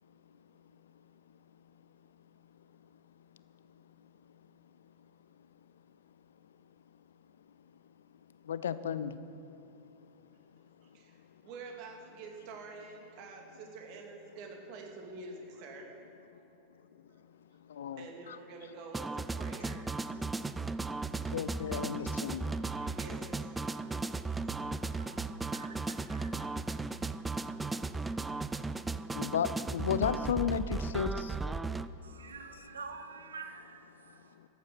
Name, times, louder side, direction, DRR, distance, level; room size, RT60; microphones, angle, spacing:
voice 1, 8.4-9.2 17.6-18.4 21.1-22.6 24.3-25.0 26.5-26.8 27.4-27.6 27.9-28.0 28.3-28.4 29.1-31.4 32.1-32.2 34.4-34.5, left 8 dB, 65° left, 14 dB, 0.6 m, -35 dB
voice 2, 10.8-16.0 17.9-19.8 22.4-25.5, right 3 dB, 45° right, 2 dB, 2.3 m, -48 dB
sound 1, 18.9-31.9, right 3 dB, 10° right, 0.4 m, -36 dB
voice 3, 25.0-26.4 32.0-34.3, right 4 dB, 70° right, 6 dB, 1.3 m, -48 dB
14.5 x 10.5 x 6.0 m, 3.0 s
figure-of-eight pair, 90°, 0 cm